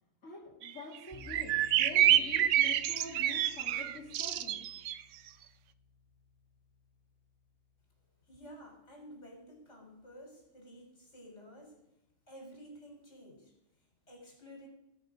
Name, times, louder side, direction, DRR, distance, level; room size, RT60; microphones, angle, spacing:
voice 1, 0.2-4.6, left 3 dB, 90° left, -4 dB, 2.4 m, -46 dB
sound 1, 0.6-0.7 0.9-1.0 1.3-4.9, right 11 dB, 80° right, 0.9 m, -27 dB
sound 2, 1.1-10.0, left 3 dB, 35° right, 2.2 m, -58 dB
voice 2, 8.2-11.8 12.3-14.7, equal, 65° left, 0 dB, 4.1 m, -52 dB
19.5 x 6.4 x 5.1 m, 0.88 s
omnidirectional pair, 1.3 m